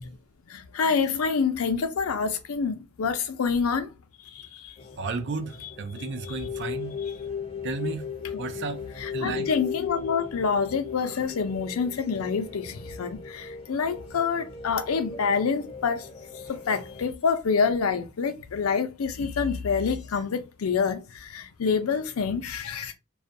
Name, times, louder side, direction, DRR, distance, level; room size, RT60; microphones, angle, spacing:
voice 1, 0.5-3.9 4.5-4.7 9.0-16.0 16.5-22.9, left 5 dB, 85° left, 0.5 m, -27 dB
sound 1, 4.8-17.0, left 6 dB, 25° left, 0.5 m, -37 dB
voice 2, 5.0-7.0 7.6-8.1 8.4-8.8 9.1-9.5, right 4 dB, 55° right, 0.4 m, -33 dB
2.3 x 2.1 x 2.6 m
head